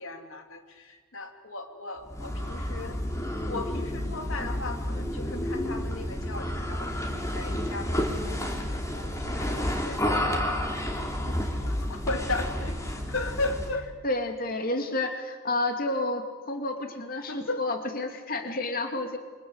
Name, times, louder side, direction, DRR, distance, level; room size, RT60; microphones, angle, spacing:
voice 1, 0.0-3.0 3.5-13.9 17.3-17.7, left 2 dB, 85° left, 5 dB, 3.0 m, -37 dB
sound 1, 2.1-13.8, equal, 15° left, 3.4 m, -30 dB
voice 2, 14.0-19.2, left 2 dB, 45° left, 5 dB, 2.6 m, -30 dB
29.0 x 24.5 x 8.1 m, 1.4 s
head